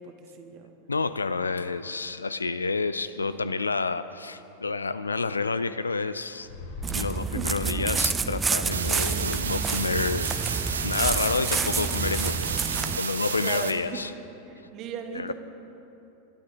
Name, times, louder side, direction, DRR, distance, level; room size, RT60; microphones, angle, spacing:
voice 1, 0.0-0.7 3.2-3.5 7.3-7.5 7.8-7.9 13.2-14.0 14.5-15.3, right 6 dB, 40° right, 5 dB, 1.7 m, -38 dB
voice 2, 0.9-6.5 6.9-10.3 10.8-12.6 13.0-14.1 14.6-14.7 15.1-15.3, left 4 dB, 75° left, 13 dB, 0.5 m, -29 dB
sound 1, 6.4-8.0, left 1 dB, 55° left, 2.7 m, -39 dB
sound 2, 6.8-13.0, right 5 dB, 15° right, 0.6 m, -29 dB
sound 3, 8.7-13.7, right 6 dB, 70° right, 1.0 m, -31 dB
25.5 x 12.5 x 4.3 m, 2.8 s
figure-of-eight pair, 90°, 0 cm